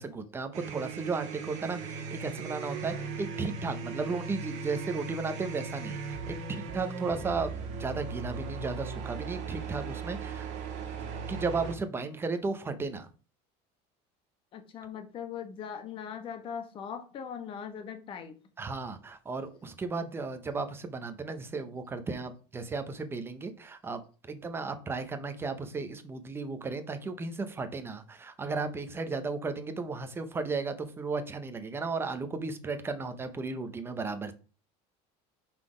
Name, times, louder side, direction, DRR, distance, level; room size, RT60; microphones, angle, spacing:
voice 1, 0.0-10.5 11.3-13.1 18.6-24.0 24.3-34.3, right 4 dB, 15° right, 0.7 m, -35 dB
sound 1, 0.5-11.7, right 5 dB, 55° right, 1.7 m, -38 dB
voice 2, 14.5-18.4, left 7 dB, 40° left, 1.1 m, -40 dB
5.7 x 4.0 x 4.9 m
cardioid pair, 150°, 14 cm